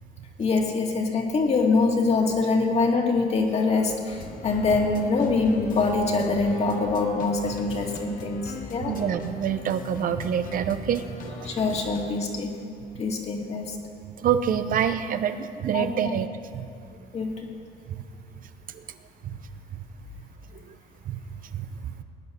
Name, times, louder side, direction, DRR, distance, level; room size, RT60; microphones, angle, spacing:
voice 1, 0.4-8.9 11.5-12.5 13.0-13.8 15.7-16.2 17.1-17.5, left 3 dB, 40° left, 1 dB, 2.4 m, -24 dB
sound 1, 4.1-12.1, left 4 dB, 55° left, 1.4 m, -39 dB
voice 2, 8.9-11.5 14.2-16.3 16.5-16.7 18.7-18.8 19.2-19.4 21.1-21.2 21.5-22.0, right 8 dB, 55° right, 10 dB, 0.7 m, -27 dB
20.0 x 9.5 x 6.5 m, 2.3 s
cardioid pair, 110°, 17 cm